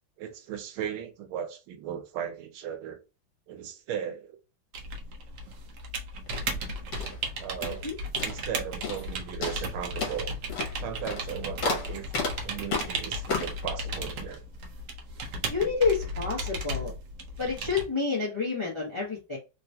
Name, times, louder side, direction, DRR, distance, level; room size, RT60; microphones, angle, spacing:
voice 1, 0.2-3.0 3.5-4.4 7.4-7.9 8.2-10.3 10.8-12.1 12.4-14.4, right 9 dB, 85° right, 1.5 m, -36 dB
sound 1, 4.7-17.9, right 1 dB, 65° right, 1.1 m, -35 dB
sound 2, 6.3-7.9 8.2-8.5 8.8-9.1 9.4-13.7, left 4 dB, 70° left, 1.6 m, -33 dB
voice 2, 15.5-16.9 17.4-19.4, left 4 dB, 25° left, 0.6 m, -29 dB
3.8 x 2.3 x 2.7 m
omnidirectional pair, 2.2 m